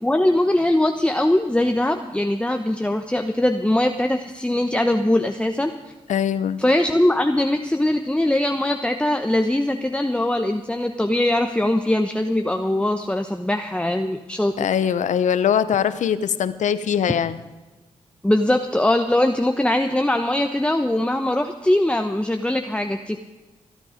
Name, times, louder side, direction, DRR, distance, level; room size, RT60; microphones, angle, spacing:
voice 1, 0.0-5.7 6.6-14.5 18.2-23.2, left 1 dB, 10° left, 5 dB, 1.1 m, -21 dB
voice 2, 6.1-6.6 14.6-17.4, left 8 dB, 75° left, 14 dB, 0.8 m, -22 dB
25.5 x 9.2 x 5.1 m, 1.2 s
supercardioid pair, 50°, 12 cm